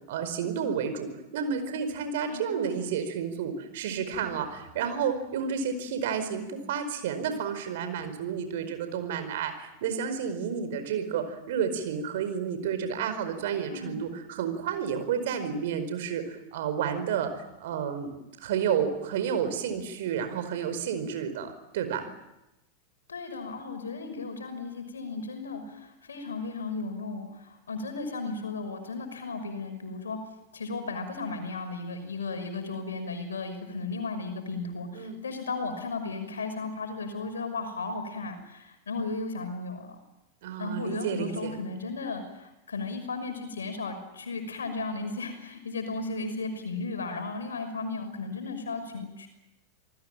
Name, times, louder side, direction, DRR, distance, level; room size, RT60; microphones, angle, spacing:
voice 1, 0.1-1.1 1.3-18.1 18.4-22.1 34.9-35.2 40.4-41.6, right 7 dB, 55° right, 9 dB, 4.9 m, -31 dB
voice 2, 2.3-2.8 13.7-14.0 23.1-30.2 30.5-40.0 40.6-49.3, left 3 dB, 70° left, 7 dB, 5.9 m, -35 dB
28.0 x 19.5 x 9.1 m, 0.94 s
figure-of-eight pair, 90°, 0 cm